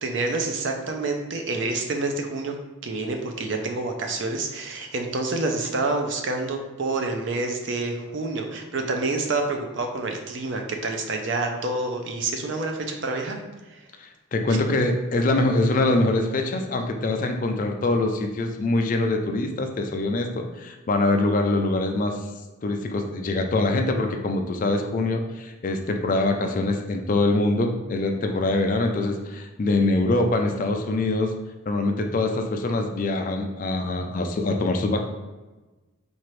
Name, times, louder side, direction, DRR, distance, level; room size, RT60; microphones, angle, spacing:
voice 1, 0.0-2.5 2.8-13.4 13.7-13.8, right 3 dB, 60° right, 4 dB, 0.5 m, -28 dB
voice 2, 14.0-22.2 22.6-31.3 31.7-35.0, left 2 dB, 40° left, 4 dB, 0.3 m, -24 dB
4.3 x 2.5 x 3.1 m, 1.2 s
head